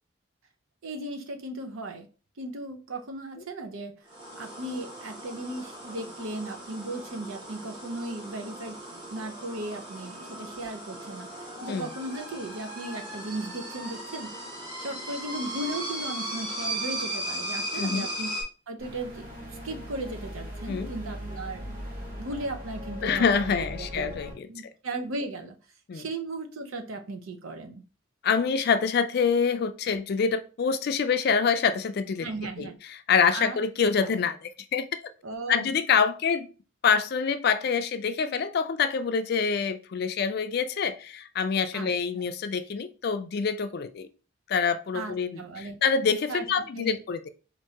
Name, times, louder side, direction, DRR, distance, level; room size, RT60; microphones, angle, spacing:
voice 1, 0.8-2.1 2.4-3.9 4.3-8.8 9.1-11.3 11.6-14.3 14.8-18.3 18.7-19.3 19.6-21.7 22.2-24.1 24.5-25.6 25.9-27.8 32.2-32.8 33.3-33.6 34.0-34.1 35.2-35.7 41.7-41.9 42.2-42.3 44.9-45.8 46.3-46.5 46.7-47.0, right 2 dB, 90° right, 0.7 m, -36 dB
sound 1, 4.1-18.4, right 1 dB, 20° right, 1.5 m, -37 dB
sound 2, 18.8-24.3, equal, 45° right, 1.6 m, -39 dB
voice 2, 23.0-24.5 25.9-26.1 28.2-32.3 32.6-34.9 35.5-36.5 36.8-44.1 44.5-47.3, left 6 dB, 50° left, 0.3 m, -26 dB
4.5 x 2.6 x 2.8 m
head